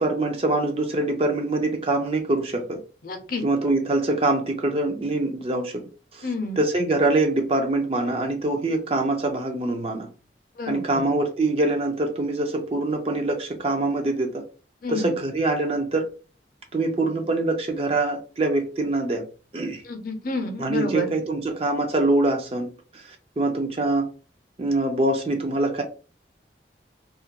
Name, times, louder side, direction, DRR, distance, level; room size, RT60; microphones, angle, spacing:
voice 1, 0.0-2.8 3.4-5.8 6.1-6.3 6.6-10.1 10.7-14.4 14.9-16.1 16.7-19.3 19.5-19.8 20.6-24.1 24.6-25.8, right 2 dB, 35° right, 0.4 m, -24 dB
voice 2, 3.0-3.4 6.2-6.6 10.6-11.1 14.8-15.1 19.8-21.1, left 2 dB, 50° left, 0.5 m, -30 dB
2.3 x 2.2 x 2.8 m
head